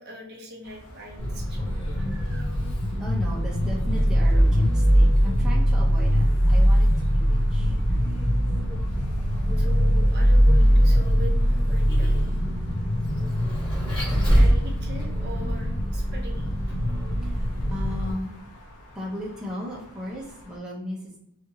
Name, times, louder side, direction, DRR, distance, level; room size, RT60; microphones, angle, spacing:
voice 1, 0.0-1.7 9.6-12.3 14.3-16.8, left 1 dB, 45° right, 0 dB, 0.6 m, -41 dB
sound 1, 0.6-20.6, left 1 dB, 85° left, 0.6 m, -44 dB
Vehicle, 1.2-18.1, equal, 20° left, 1.3 m, -21 dB
voice 2, 1.8-2.6 3.0-8.7 14.1-14.4 17.2-18.3 18.9-21.2, left 1 dB, 5° right, -6 dB, 0.6 m, -37 dB
2.8 x 2.5 x 2.7 m, 0.80 s
head